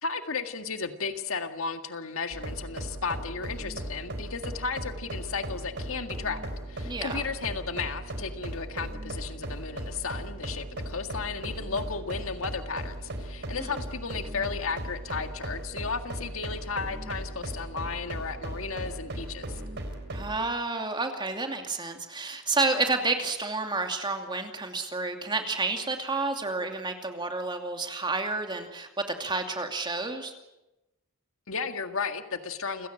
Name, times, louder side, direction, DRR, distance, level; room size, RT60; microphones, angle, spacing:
voice 1, 0.0-6.4 6.7-19.6 31.5-32.9, left 5 dB, 70° left, 7 dB, 1.8 m, -34 dB
sound 1, 2.3-20.4, right 1 dB, 55° right, 4.2 m, -37 dB
voice 2, 6.8-7.2 13.6-13.7 20.1-30.3, right 3 dB, 20° right, 5 dB, 2.6 m, -30 dB
29.0 x 17.0 x 8.8 m, 0.98 s
head